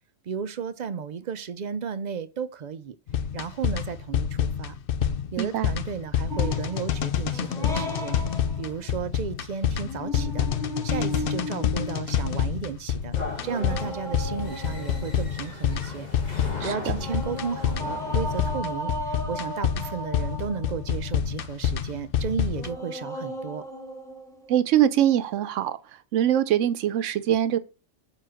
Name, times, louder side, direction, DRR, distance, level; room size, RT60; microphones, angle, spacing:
voice 1, 0.2-3.0 3.3-4.7 5.3-8.2 8.6-10.5 10.8-13.2 13.4-16.1 16.4-23.6, right 6 dB, 60° right, 0.5 m, -34 dB
sound 1, 3.1-22.7, left 8 dB, 60° left, 0.7 m, -28 dB
voice 2, 5.4-5.7 16.6-17.0 24.5-25.8 26.1-27.6, right 11 dB, 85° right, 0.9 m, -23 dB
sound 2, 6.3-8.9 9.8-12.7 13.4-15.5 17.0-21.1 22.6-24.6, equal, 5° left, 1.2 m, -36 dB
sound 3, 13.1-18.6, left 3 dB, 35° left, 1.8 m, -39 dB
5.6 x 4.7 x 6.2 m
omnidirectional pair, 1.2 m